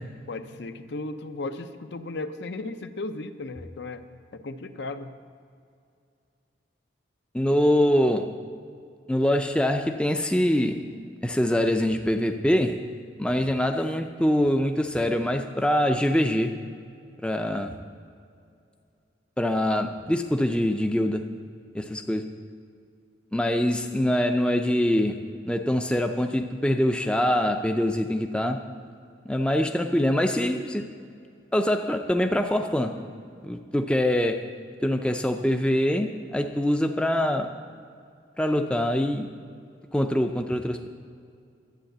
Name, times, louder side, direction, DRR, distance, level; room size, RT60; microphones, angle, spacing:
voice 1, 0.3-4.0 4.3-5.1, left 2 dB, 65° left, 9 dB, 0.7 m, -35 dB
voice 2, 7.3-8.3 9.1-10.9 11.2-12.9 13.2-16.6 17.2-17.7 19.4-21.3 21.7-22.3 23.3-28.7 29.2-30.9 31.5-33.0 33.4-34.5 34.8-37.6 38.4-39.3 39.9-40.9, left 1 dB, 5° left, 5 dB, 0.4 m, -24 dB
11.5 x 8.0 x 7.9 m, 2.4 s
head